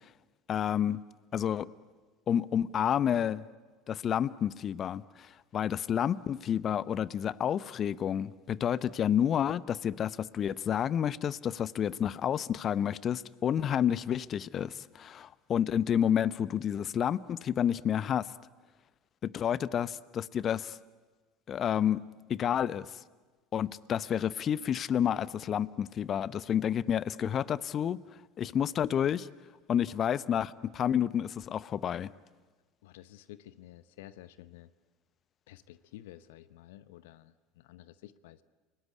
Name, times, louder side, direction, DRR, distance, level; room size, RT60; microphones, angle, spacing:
voice 1, 0.5-1.0 1.3-1.7 2.3-3.4 3.9-18.3 19.2-20.8 21.5-22.0 22.3-22.9 23.5-28.0 28.4-29.3 29.7-32.1, left 9 dB, 40° left, 19 dB, 0.8 m, -30 dB
voice 2, 32.8-34.7 35.5-38.4, left 14 dB, 75° left, 16 dB, 0.8 m, -51 dB
29.5 x 19.0 x 9.6 m, 1.3 s
hypercardioid pair, 75°, 0 cm